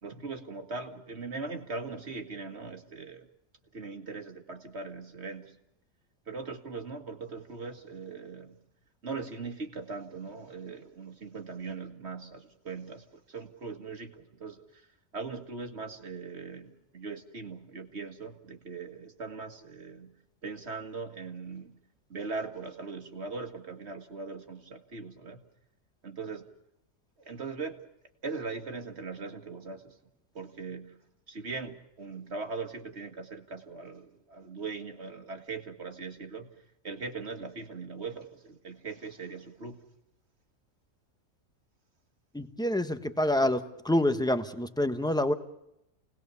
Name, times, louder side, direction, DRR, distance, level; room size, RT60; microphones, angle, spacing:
voice 1, 0.0-3.3 3.7-5.6 6.3-8.6 9.0-14.8 15.1-20.1 20.4-21.8 22.1-25.4 26.0-26.5 27.2-27.8 28.2-30.0 30.3-31.0 31.3-36.5 36.8-39.8, right 4 dB, 50° right, 5 dB, 2.0 m, -40 dB
voice 2, 42.3-45.3, left 1 dB, 5° left, 8 dB, 1.0 m, -27 dB
29.5 x 19.0 x 7.0 m, 0.85 s
omnidirectional pair, 1.5 m